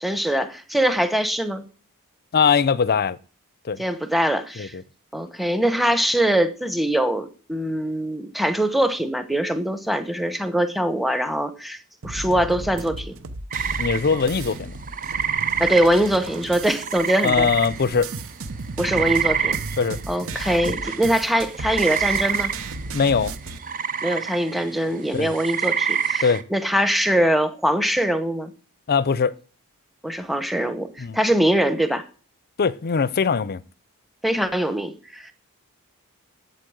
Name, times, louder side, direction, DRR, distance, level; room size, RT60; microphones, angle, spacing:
voice 1, 0.0-1.6 3.8-4.7 5.1-11.8 12.0-13.1 15.6-17.5 18.8-19.6 20.1-22.5 24.0-28.5 30.0-32.0 34.2-35.3, right 1 dB, ahead, 1.0 m, -22 dB
voice 2, 2.3-3.2 3.6-3.8 4.6-4.8 13.8-14.7 17.2-18.1 19.8-20.0 22.9-23.3 25.1-25.3 26.2-26.4 28.9-29.3 31.0-31.2 32.6-33.6, left 5 dB, 45° left, 0.5 m, -21 dB
sound 1, 12.0-23.6, right 3 dB, 65° right, 1.0 m, -34 dB
sound 2, 13.5-18.2 18.5-26.4, right 7 dB, 40° right, 0.7 m, -27 dB
8.3 x 8.2 x 8.0 m
head